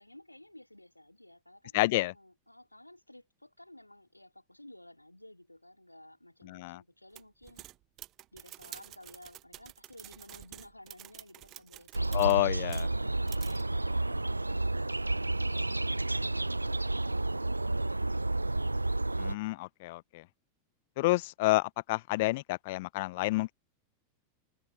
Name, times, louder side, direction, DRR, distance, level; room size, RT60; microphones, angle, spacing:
voice 1, 0.0-7.6 8.3-18.5, left 1 dB, 85° left, 2.7 m, -55 dB
voice 2, 1.7-2.1 6.5-6.8 12.1-12.9 19.2-20.2 21.0-23.5, left 21 dB, 50° left, 0.9 m, -29 dB
sound 1, 7.1-13.0 13.3-13.6, right 15 dB, 35° right, 1.0 m, -49 dB
sound 2, 11.9-19.3, right 2 dB, 85° right, 0.7 m, -31 dB
figure-of-eight pair, 90°, 0 cm